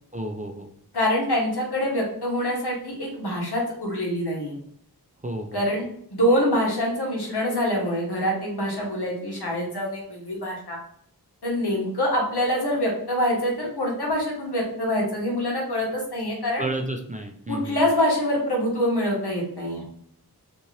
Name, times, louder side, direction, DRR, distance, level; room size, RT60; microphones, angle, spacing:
voice 1, 0.1-0.7 5.2-5.6 16.6-17.8, right 1 dB, 20° right, 3 dB, 0.4 m, -31 dB
voice 2, 0.9-4.5 5.5-5.8 6.1-10.8 11.4-16.6 17.5-19.8, equal, 80° left, -2 dB, 1.1 m, -25 dB
2.7 x 2.5 x 3.1 m, 0.66 s
wide cardioid pair, 40°, 39 cm